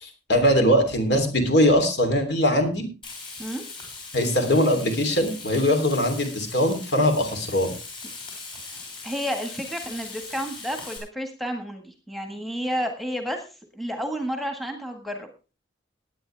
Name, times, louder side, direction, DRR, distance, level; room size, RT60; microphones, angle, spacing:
voice 1, 0.0-2.8 4.1-7.7, equal, 60° left, 6 dB, 3.2 m, -21 dB
Frying (food), 3.0-11.0, left 3 dB, 25° left, 6.0 m, -40 dB
voice 2, 9.0-13.4 13.7-15.3, equal, ahead, 5 dB, 1.6 m, -31 dB
18.0 x 9.6 x 3.4 m, 0.32 s
head